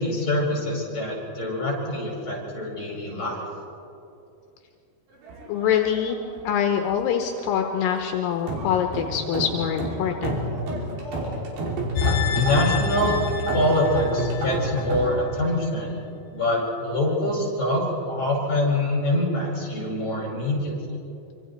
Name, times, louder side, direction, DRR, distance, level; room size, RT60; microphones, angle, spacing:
voice 1, 0.0-3.5 12.4-13.2 13.5-15.9 16.3-20.7, left 1 dB, 20° left, -3 dB, 7.2 m, -25 dB
sound 1, 5.2-6.6 6.8-7.6 8.0-15.1, right 2 dB, 70° right, 5.4 m, -30 dB
voice 2, 5.5-6.2 6.4-10.4, left 9 dB, 80° left, 4 dB, 3.1 m, -24 dB
sound 2, 12.0-15.2 15.5-15.6, left 7 dB, 50° left, 4.0 m, -28 dB
26.5 x 25.5 x 4.5 m, 2.6 s
omnidirectional pair, 5.0 m